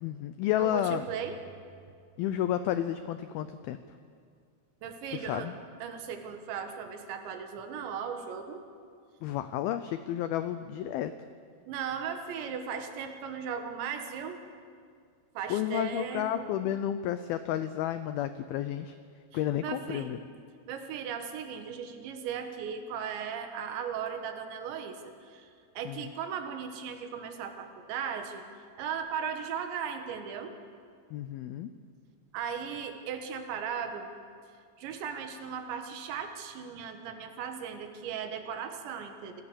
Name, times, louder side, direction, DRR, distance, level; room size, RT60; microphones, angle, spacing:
voice 1, 0.0-1.1 2.2-3.8 5.1-5.5 9.2-11.1 15.5-18.9 19.3-20.2 25.9-26.1 31.1-31.7, left 11 dB, 90° left, 11 dB, 2.1 m, -31 dB
voice 2, 0.6-1.4 4.8-5.5 5.8-8.6 11.7-14.4 15.4-16.5 19.6-20.2 20.7-28.4 28.8-30.5 32.3-34.1 34.8-39.4, right 7 dB, 85° right, 6 dB, 3.8 m, -37 dB
26.5 x 17.0 x 7.0 m, 2.2 s
omnidirectional pair, 5.1 m